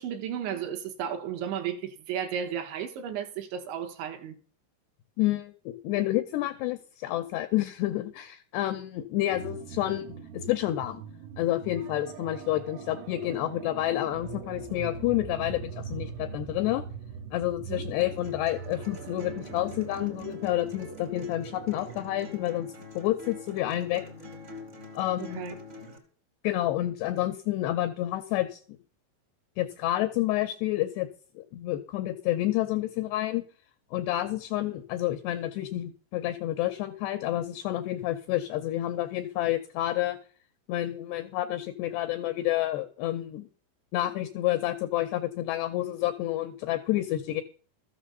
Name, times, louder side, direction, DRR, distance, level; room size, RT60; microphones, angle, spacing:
voice 1, 0.0-4.3 17.7-17.8 25.2-25.5, right 8 dB, 75° right, 3.2 m, -34 dB
voice 2, 5.2-11.0 11.4-16.8 17.3-22.7 23.0-24.0 24.9-25.6 26.4-28.6 29.6-31.1 31.4-33.4 33.9-40.2 40.7-43.5 43.9-47.4, left 15 dB, 85° left, 2.4 m, -29 dB
sound 1, 9.3-22.0, right 7 dB, 90° right, 3.6 m, -42 dB
sound 2, 18.0-26.0, left 2 dB, 35° right, 1.1 m, -46 dB
13.5 x 7.2 x 6.6 m
omnidirectional pair, 5.7 m